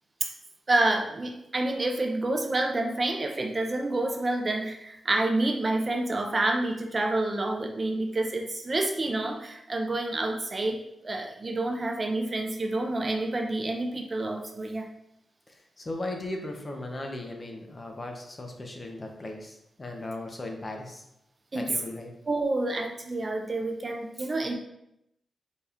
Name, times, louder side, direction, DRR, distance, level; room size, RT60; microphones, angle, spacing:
voice 1, 0.7-10.8 11.0-14.9 21.5-21.7 22.3-24.5, right 2 dB, 30° right, 2 dB, 0.4 m, -28 dB
voice 2, 15.8-21.0 21.5-22.1, left 2 dB, 25° left, 2 dB, 0.5 m, -37 dB
4.1 x 2.3 x 3.4 m, 0.82 s
wide cardioid pair, 145°, 0 cm